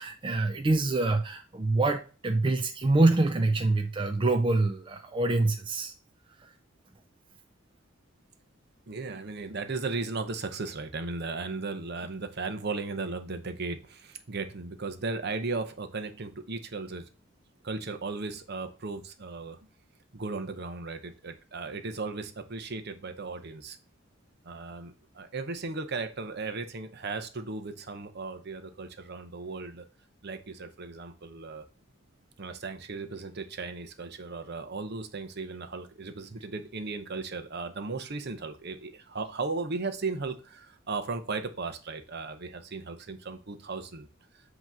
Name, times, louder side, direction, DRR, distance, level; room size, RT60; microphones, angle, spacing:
voice 1, 0.0-5.9 6.4-6.5, right 2 dB, 25° right, 5 dB, 0.4 m, -25 dB
voice 2, 8.9-17.0 17.6-19.6 20.1-23.8 24.4-29.8 30.2-31.6 32.4-44.1, right 3 dB, 50° right, 9 dB, 0.8 m, -36 dB
8.0 x 3.0 x 6.0 m, 0.35 s
head